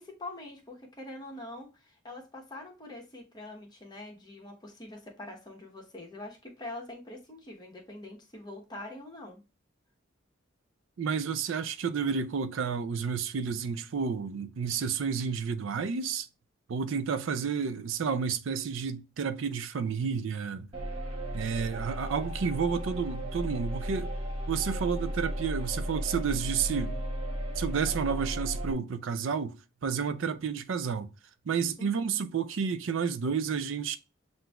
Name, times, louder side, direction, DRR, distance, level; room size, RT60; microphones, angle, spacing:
voice 1, 0.0-9.4 31.8-32.2, left 2 dB, 20° left, 1.0 m, -44 dB
voice 2, 11.0-16.3 16.7-20.7 21.3-24.1 24.5-27.0 27.6-31.1 31.5-34.0, right 6 dB, 75° right, 0.4 m, -31 dB
sound 1, 20.7-28.7, equal, 30° right, 0.9 m, -34 dB
7.5 x 2.6 x 2.3 m
head